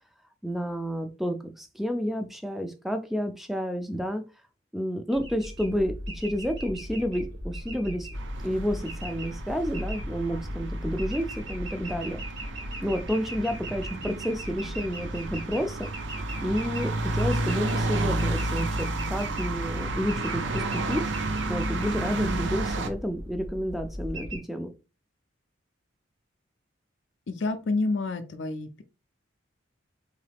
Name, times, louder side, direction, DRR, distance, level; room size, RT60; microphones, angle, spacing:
voice 1, 0.4-4.2 4.7-8.1 8.4-12.2 12.6-15.9 16.4-21.0 21.5-24.7, equal, ahead, 0.4 m, -30 dB
sound 1, 5.1-24.4, equal, 75° right, 2.2 m, -38 dB
sound 2, 8.1-22.9, right 2 dB, 60° right, 0.5 m, -32 dB
voice 2, 27.3-28.8, left 3 dB, 60° left, 0.4 m, -29 dB
3.8 x 3.2 x 3.4 m
head